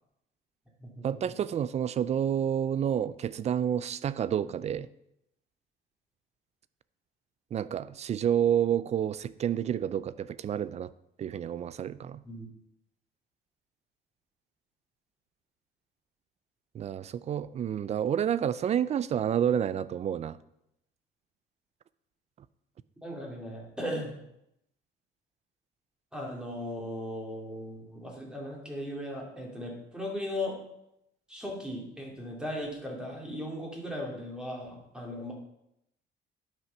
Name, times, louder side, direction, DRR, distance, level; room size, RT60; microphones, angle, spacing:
voice 1, 1.0-4.9 7.5-10.9 11.2-12.2 16.7-20.4, right 9 dB, 35° right, 17 dB, 0.4 m, -29 dB
voice 2, 23.0-24.1 26.1-30.6 31.3-35.3, left 1 dB, 5° right, -2 dB, 2.7 m, -37 dB
11.0 x 6.0 x 5.7 m, 0.81 s
cardioid pair, 135°, 19 cm